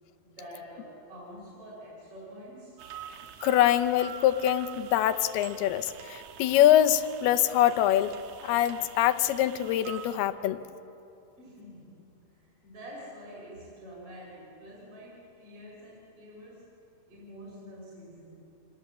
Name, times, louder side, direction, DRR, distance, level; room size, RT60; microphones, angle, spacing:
voice 1, 0.2-2.8 11.4-12.1 12.3-16.8 17.1-18.4, equal, 35° right, -4 dB, 5.4 m, -47 dB
sound 1, 2.8-10.2, right 9 dB, 65° right, 2.1 m, -46 dB
voice 2, 3.4-8.2 8.4-10.6, left 12 dB, 80° left, 11 dB, 2.7 m, -24 dB
27.0 x 19.5 x 7.3 m, 2.7 s
omnidirectional pair, 4.7 m